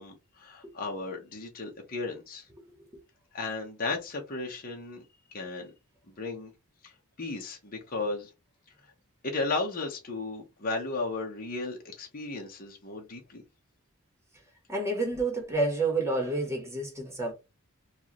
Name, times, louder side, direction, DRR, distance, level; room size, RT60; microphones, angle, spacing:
voice 1, 0.0-2.5 3.3-5.0 5.3-5.7 6.2-6.5 6.8-6.9 7.2-8.3 9.2-13.4, left 3 dB, 40° left, 1.0 m, -35 dB
voice 2, 14.7-17.3, right 2 dB, 10° right, 1.3 m, -29 dB
4.6 x 2.5 x 2.9 m
head